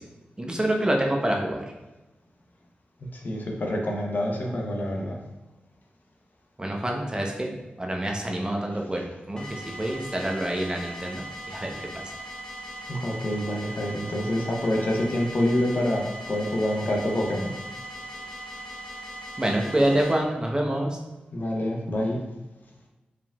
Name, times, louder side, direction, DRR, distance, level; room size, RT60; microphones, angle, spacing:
voice 1, 0.4-1.6 6.6-7.5 7.8-12.0 19.4-21.0, right 1 dB, 20° right, 0 dB, 0.8 m, -27 dB
voice 2, 3.1-5.2 12.9-17.5 21.3-22.2, left 1 dB, 55° left, 0 dB, 0.8 m, -27 dB
sound 1, 9.4-20.2, equal, 20° left, 1.0 m, -39 dB
4.8 x 3.5 x 2.4 m, 1.1 s
cardioid pair, 45°, 4 cm